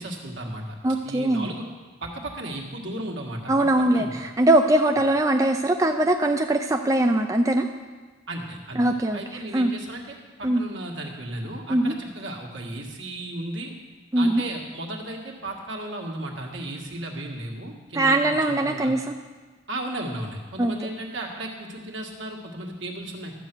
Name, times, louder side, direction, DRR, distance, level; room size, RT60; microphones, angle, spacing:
voice 1, 0.0-0.8 1.0-1.6 2.0-4.1 8.3-8.8 9.1-13.7 14.1-18.9 19.7-23.3, right 1 dB, 65° right, 0 dB, 1.7 m, -35 dB
voice 2, 0.8-1.5 3.5-7.7 8.8-9.7 10.4-10.6 11.7-11.9 14.1-14.4 18.0-19.0 20.6-20.7, right 1 dB, 15° right, 4 dB, 0.4 m, -21 dB
12.5 x 7.9 x 6.1 m, 1.3 s
head